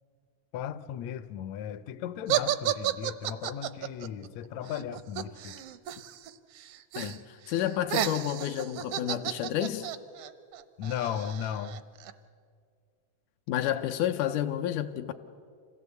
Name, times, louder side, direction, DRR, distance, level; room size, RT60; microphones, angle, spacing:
voice 1, 0.5-5.6 10.8-11.9, left 9 dB, 75° left, 1.8 m, -36 dB
sound 1, 2.3-6.3 6.6-7.2 7.5-12.1, right 11 dB, 75° right, 1.3 m, -33 dB
voice 2, 7.0-9.9 13.5-15.1, left 11 dB, 90° left, 2.2 m, -30 dB
26.5 x 17.0 x 8.1 m
omnidirectional pair, 3.5 m